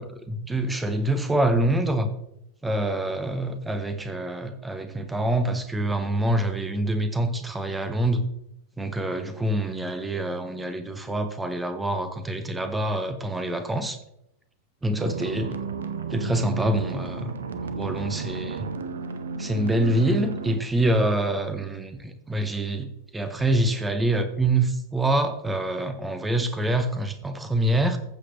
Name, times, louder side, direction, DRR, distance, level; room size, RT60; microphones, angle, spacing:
voice 1, 0.0-2.1 2.6-8.3 8.8-14.0 14.8-15.5 16.1-17.3 17.8-18.7 19.4-22.9 23.1-28.0, right 1 dB, 10° right, 9 dB, 1.0 m, -26 dB
sound 1, 15.0-20.6, right 5 dB, 65° right, 0.9 m, -33 dB
15.0 x 7.7 x 3.2 m, 0.77 s
figure-of-eight pair, 90°, 0 cm